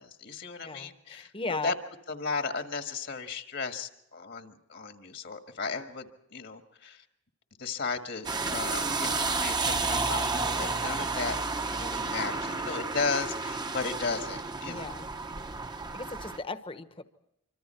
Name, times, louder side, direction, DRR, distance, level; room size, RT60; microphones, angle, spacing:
voice 1, 0.0-1.7 2.1-7.0 7.6-11.4 11.7-15.0, left 4 dB, 60° left, 6 dB, 1.7 m, -35 dB
voice 2, 0.6-1.7 14.7-15.1 15.6-17.0, left 3 dB, 25° left, 10 dB, 1.1 m, -37 dB
sound 1, 8.2-16.4, right 3 dB, 20° right, 0.9 m, -31 dB
26.0 x 25.0 x 4.4 m, 0.80 s
head